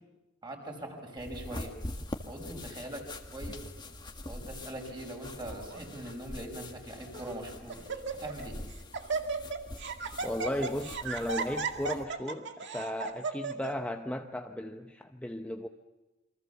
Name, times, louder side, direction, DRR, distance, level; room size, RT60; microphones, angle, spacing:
voice 1, 0.4-1.7 2.3-3.1 3.3-3.6 4.3-8.6, right 1 dB, 20° right, 2 dB, 5.7 m, -42 dB
sound 1, 1.2-12.0, left 1 dB, 20° left, 1.8 m, -44 dB
Laughter, 5.4-5.8 6.6-6.7 7.1-7.4 7.7-8.5 8.7-13.7, right 4 dB, 60° right, 2.1 m, -35 dB
voice 2, 10.2-15.7, left 1 dB, 5° left, 4 dB, 0.9 m, -35 dB
28.5 x 24.0 x 7.1 m, 1.1 s
head